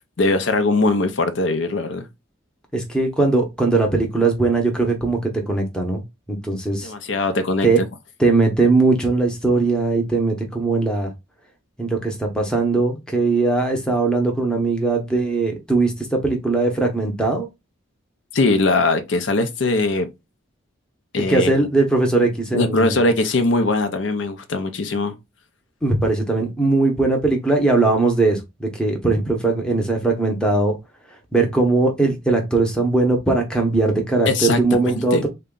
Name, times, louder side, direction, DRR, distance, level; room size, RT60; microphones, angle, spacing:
voice 1, 0.2-2.1 6.8-7.9 18.3-20.1 21.1-21.5 22.5-25.2 34.3-35.2, left 2 dB, 60° left, 0.5 m, -21 dB
voice 2, 2.7-6.0 6.3-6.9 7.6-7.8 8.2-11.1 11.8-17.5 21.3-23.0 25.8-30.8 31.3-35.3, right 3 dB, 5° left, 0.7 m, -20 dB
3.8 x 2.2 x 3.7 m
head